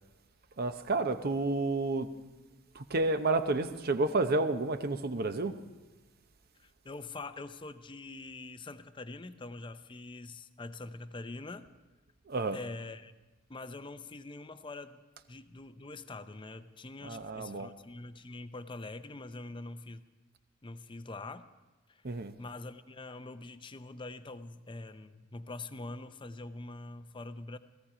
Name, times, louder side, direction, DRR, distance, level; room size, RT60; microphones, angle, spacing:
voice 1, 0.6-2.1 2.7-5.6 12.3-12.6 17.0-17.7 22.0-22.3, right 3 dB, 50° right, 9 dB, 0.8 m, -30 dB
voice 2, 6.6-11.7 12.5-13.1 13.5-15.0 15.3-20.1 20.6-21.5 21.9-27.6, left 2 dB, 25° left, 11 dB, 0.6 m, -44 dB
17.5 x 15.0 x 4.9 m, 1.1 s
head